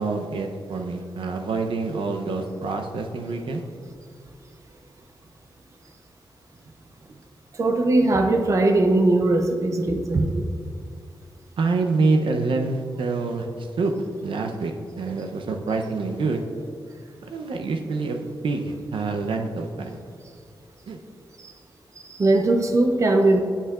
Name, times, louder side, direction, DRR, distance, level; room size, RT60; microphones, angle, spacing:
voice 1, 0.0-3.6 11.6-13.9 14.2-16.4 17.3-20.0 20.9-21.0, right 3 dB, 75° right, 4 dB, 0.6 m, -26 dB
voice 2, 7.6-10.4 21.4-21.5 22.1-23.4, right 2 dB, 35° right, 4 dB, 0.5 m, -20 dB
11.5 x 5.7 x 2.4 m, 2.3 s
wide cardioid pair, 160°, 9 cm